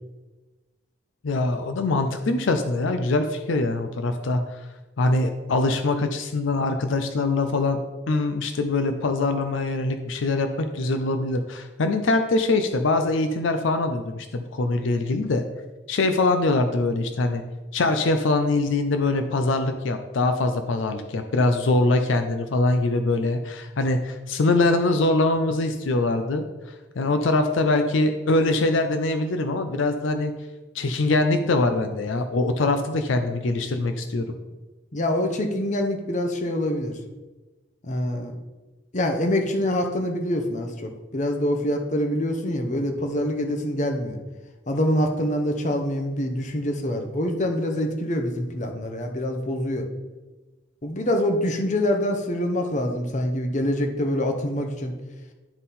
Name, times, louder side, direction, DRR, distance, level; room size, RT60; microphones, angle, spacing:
voice 1, 1.2-4.7 5.0-7.8 8.1-15.4 15.9-17.4 17.7-30.3 30.7-34.3, left 2 dB, 75° left, 7 dB, 0.5 m, -23 dB
voice 2, 34.9-36.9 37.9-38.3 38.9-44.2 44.7-49.9 50.8-54.9, left 1 dB, 35° left, 4 dB, 0.7 m, -25 dB
11.0 x 3.7 x 4.1 m, 1.2 s
head